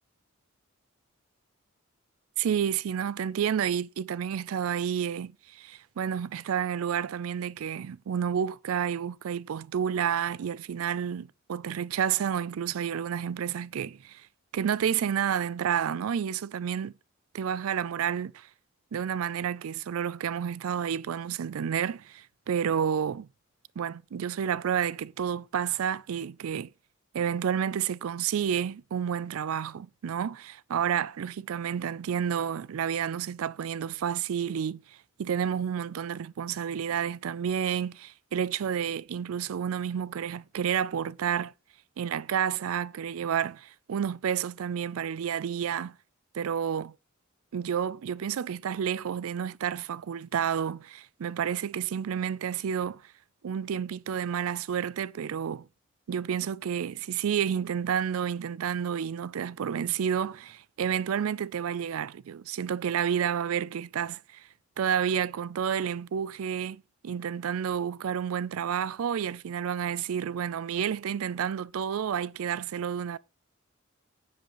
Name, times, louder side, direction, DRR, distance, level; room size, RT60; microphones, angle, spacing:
voice 1, 2.4-14.3 14.5-16.9 17.3-18.5 18.9-23.3 23.8-26.7 27.1-34.8 35.2-41.5 42.0-46.0 46.3-46.9 47.5-53.0 53.4-55.7 56.1-64.4 64.8-73.2, right 8 dB, 80° right, 0.4 m, -30 dB
10.0 x 7.6 x 3.0 m
head